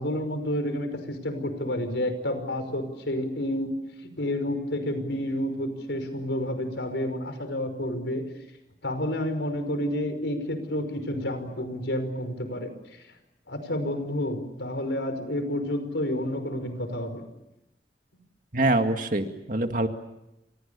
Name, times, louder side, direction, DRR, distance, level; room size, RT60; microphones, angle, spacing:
voice 1, 0.0-8.2 8.8-13.0 13.5-17.2, left 1 dB, 85° left, 8 dB, 5.4 m, -30 dB
voice 2, 18.5-19.9, right 2 dB, 45° right, 6 dB, 2.1 m, -24 dB
29.0 x 27.0 x 7.0 m, 0.91 s
head